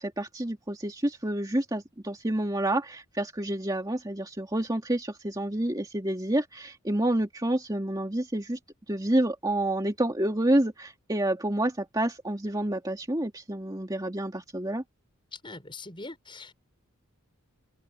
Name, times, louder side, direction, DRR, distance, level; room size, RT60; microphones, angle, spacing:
voice 1, 0.0-8.6 8.9-14.8, right 1 dB, 15° right, 2.3 m, -28 dB
voice 2, 15.3-16.6, left 3 dB, 20° left, 6.2 m, -42 dB
head